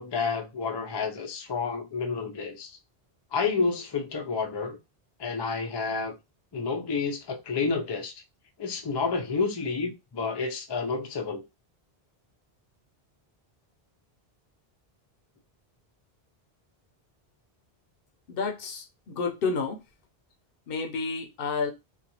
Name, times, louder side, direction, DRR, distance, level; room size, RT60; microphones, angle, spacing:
voice 1, 0.0-2.8 3.3-4.8 5.2-6.1 6.5-8.1 8.6-11.4, left 4 dB, 40° left, 0.4 m, -30 dB
voice 2, 18.3-19.8 20.7-21.7, left 4 dB, 65° left, 0.8 m, -30 dB
2.5 x 2.2 x 2.8 m
omnidirectional pair, 1.0 m